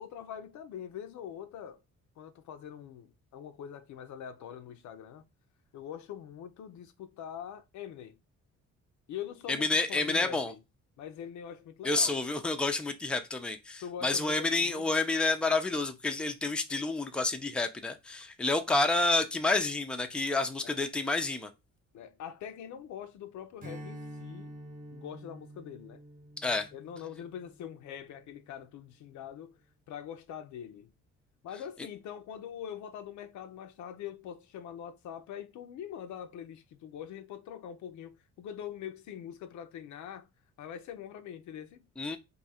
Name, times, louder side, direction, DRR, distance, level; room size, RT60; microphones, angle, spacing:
voice 1, 0.0-1.8 2.2-5.2 5.7-8.2 9.1-10.6 11.0-12.3 13.8-14.9 20.6-20.8 21.9-24.6 24.9-26.0 26.7-29.6 29.9-30.9 31.4-40.3 40.6-41.9, left 9 dB, 70° left, 0.5 m, -43 dB
voice 2, 9.5-10.5 11.8-21.5 26.4-26.7 42.0-42.2, left 3 dB, 5° left, 0.4 m, -29 dB
Strum, 23.6-28.4, equal, 25° right, 0.9 m, -48 dB
2.7 x 2.4 x 4.1 m
cardioid pair, 90°, 30 cm